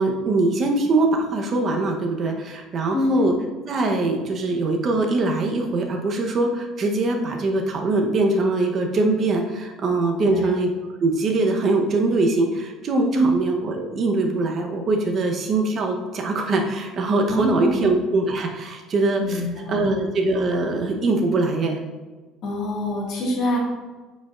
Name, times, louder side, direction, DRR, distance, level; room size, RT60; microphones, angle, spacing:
voice 1, 0.0-3.3 3.7-10.7 11.0-19.4 19.7-21.8, right 2 dB, 30° right, 3 dB, 0.8 m, -22 dB
voice 2, 2.9-3.3 10.2-10.5 13.1-13.3 17.3-17.9 19.2-19.9 22.4-23.6, left 1 dB, 45° left, -2 dB, 1.6 m, -24 dB
9.0 x 5.3 x 2.4 m, 1.3 s
cardioid pair, 175°, 0 cm